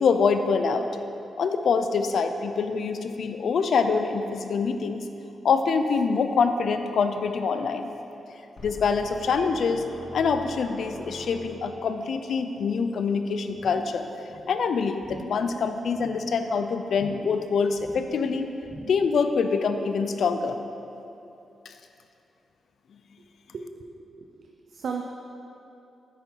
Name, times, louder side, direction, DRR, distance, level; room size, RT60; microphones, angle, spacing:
voice 1, 0.0-0.9 1.4-5.1 5.4-7.9 8.6-14.0 14.5-18.5 18.9-20.6 21.7-21.8, left 5 dB, 65° left, 8 dB, 0.6 m, -25 dB
sound 1, 8.6-11.8, left 1 dB, 50° left, 2.0 m, -43 dB
sound 2, 13.5-14.0 14.3-14.6 15.0-15.5 15.8-16.3 16.9-17.4 17.7-18.2 18.6-19.1 19.5-19.6, equal, 25° left, 2.2 m, -44 dB
voice 2, 23.5-25.0, right 5 dB, 60° right, 2 dB, 0.6 m, -36 dB
9.1 x 8.8 x 4.6 m, 2.8 s
wide cardioid pair, 130°, 0 cm